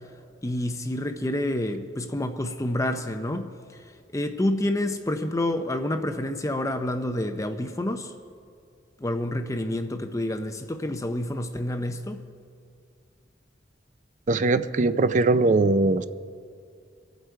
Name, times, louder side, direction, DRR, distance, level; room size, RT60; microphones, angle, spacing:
voice 1, 0.4-3.5 4.1-8.1 9.0-12.2, left 1 dB, 20° left, 7 dB, 0.6 m, -28 dB
voice 2, 14.3-16.0, right 3 dB, 45° right, 12 dB, 0.5 m, -21 dB
23.5 x 8.0 x 4.6 m, 2.3 s
head